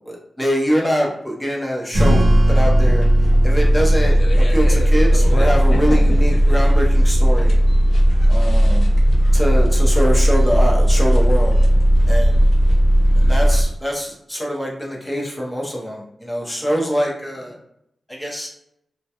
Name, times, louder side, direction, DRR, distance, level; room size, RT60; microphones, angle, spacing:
voice 1, 0.0-7.6 8.3-8.9 9.3-11.6 12.0-12.4 13.1-17.6 18.1-18.5, equal, 10° left, -2 dB, 0.7 m, -24 dB
sound 1, 1.9-13.6, equal, 65° left, 0.4 m, -15 dB
sound 2, 1.9-7.0, right 2 dB, 50° right, 0.6 m, -27 dB
2.2 x 2.1 x 2.8 m, 0.78 s
wide cardioid pair, 95°, 0 cm